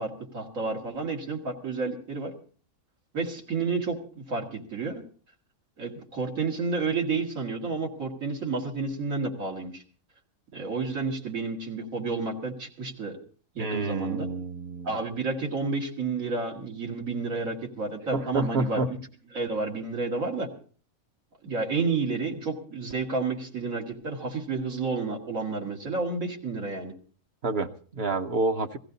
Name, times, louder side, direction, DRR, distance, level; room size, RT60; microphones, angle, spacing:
voice 1, 0.0-2.3 3.1-5.0 5.8-9.8 10.5-13.2 13.5-14.3 14.8-19.0 19.3-20.5 21.4-26.9, right 4 dB, 85° right, 1 dB, 2.5 m, -30 dB
voice 2, 13.6-14.9 18.1-18.9 27.4-28.8, right 3 dB, 55° right, 7 dB, 1.0 m, -28 dB
17.0 x 15.5 x 4.0 m, 0.43 s
omnidirectional pair, 1.4 m